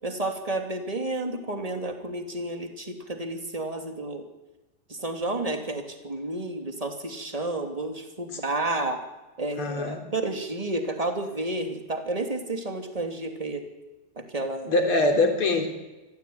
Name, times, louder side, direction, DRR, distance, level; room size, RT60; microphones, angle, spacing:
voice 1, 0.0-4.2 4.9-9.0 9.4-13.6 14.2-14.8, right 2 dB, 10° right, 4 dB, 2.2 m, -31 dB
voice 2, 9.6-10.0 14.6-15.7, left 2 dB, 35° left, 5 dB, 4.0 m, -23 dB
26.0 x 15.0 x 9.6 m, 1.1 s
omnidirectional pair, 4.3 m